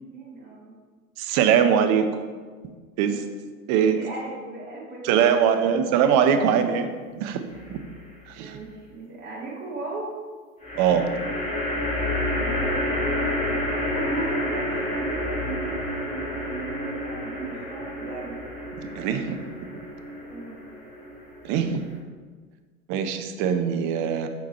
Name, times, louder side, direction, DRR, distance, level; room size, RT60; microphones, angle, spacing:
voice 1, 0.1-0.7 3.0-3.1 3.7-5.7 8.4-10.1 12.4-13.6 13.9-18.3 20.2-20.6, right 3 dB, 25° right, -5 dB, 1.9 m, -37 dB
voice 2, 1.2-2.2 3.0-3.2 3.7-4.0 5.0-7.4 7.7-7.8 8.4-8.6 10.7-11.1 18.8-19.4 21.4-21.8 22.9-24.3, right 8 dB, 45° right, 7 dB, 0.7 m, -22 dB
sound 1, 7.5-8.1 10.6-22.0, left 1 dB, 15° left, 1.9 m, -29 dB
5.9 x 4.6 x 4.1 m, 1.5 s
hypercardioid pair, 95°, 42 cm